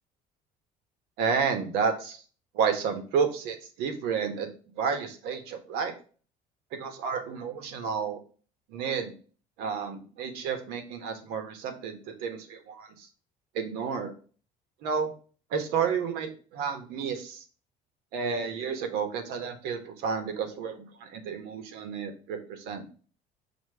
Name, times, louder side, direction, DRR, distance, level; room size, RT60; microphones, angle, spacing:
voice 1, 1.2-2.2 2.5-4.5 4.8-5.9 6.7-8.2 8.7-9.1 9.6-13.1 13.5-14.1 14.8-15.1 15.5-17.4 18.1-22.8, right 6 dB, 85° right, 7 dB, 1.3 m, -31 dB
7.2 x 3.0 x 4.7 m, 0.39 s
cardioid pair, 160°, 16 cm